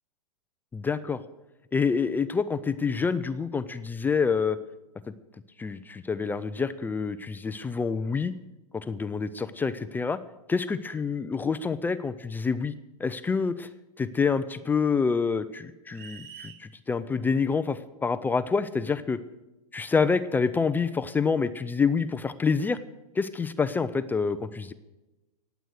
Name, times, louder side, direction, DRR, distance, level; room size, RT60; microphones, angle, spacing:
voice 1, 0.7-1.2 1.7-4.6 5.6-8.3 8.7-10.2 10.5-12.7 13.0-13.7 14.0-19.2 19.7-22.8 23.2-24.7, left 5 dB, 10° left, 12 dB, 0.4 m, -27 dB
sound 1, 15.9-16.6, right 8 dB, 45° right, 1.6 m, -45 dB
18.5 x 8.1 x 6.4 m, 1.0 s
hypercardioid pair, 135°, 20 cm